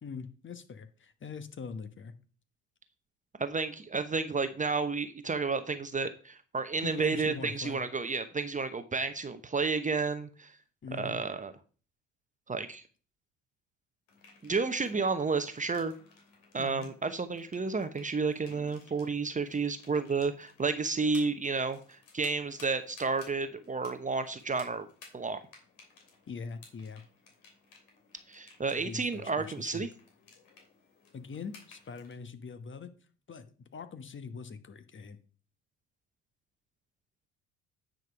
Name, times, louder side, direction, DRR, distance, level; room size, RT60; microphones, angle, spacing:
voice 1, 0.0-2.1 6.8-7.8 10.8-11.2 16.6-16.9 26.3-27.0 28.7-29.9 31.1-32.9 33.3-35.2, left 5 dB, 30° left, 10 dB, 1.2 m, -42 dB
voice 2, 3.4-10.5 11.0-11.5 12.5-12.8 14.4-15.9 16.5-24.9 25.1-25.4 28.3-29.9, right 4 dB, 20° right, 10 dB, 0.9 m, -31 dB
sound 1, 14.1-32.1, left 4 dB, 65° left, 2.9 m, -58 dB
9.4 x 5.2 x 5.0 m, 0.38 s
figure-of-eight pair, 55°, 38 cm